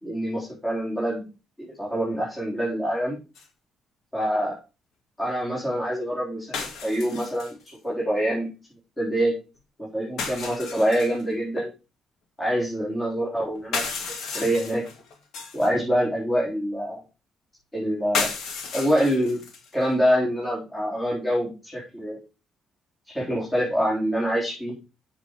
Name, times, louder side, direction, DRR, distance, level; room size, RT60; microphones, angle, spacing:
voice 1, 0.0-1.2 1.6-3.2 4.1-4.6 5.2-8.5 9.0-9.3 9.8-11.7 12.4-14.0 14.3-14.8 15.5-17.0 17.7-18.3 18.7-19.4 19.7-22.2 23.1-24.7, equal, 15° left, -5 dB, 4.1 m, -25 dB
sound 1, 3.4-3.5 6.5-7.7 10.2-11.2 13.6-15.7 18.1-19.7, left 5 dB, 80° left, 2.3 m, -32 dB
7.3 x 7.3 x 4.9 m, 0.30 s
cardioid pair, 90°, 0 cm